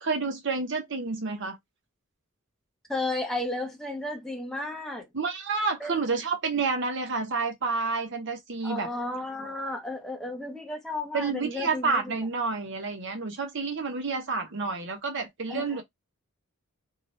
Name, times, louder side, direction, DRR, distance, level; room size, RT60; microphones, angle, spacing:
voice 1, 0.0-1.6 5.1-8.9 11.1-15.8, right 4 dB, 60° right, 1.0 m, -29 dB
voice 2, 2.9-5.1 5.8-6.0 8.6-12.2 15.5-15.8, left 2 dB, ahead, 0.9 m, -33 dB
2.8 x 2.5 x 3.1 m
head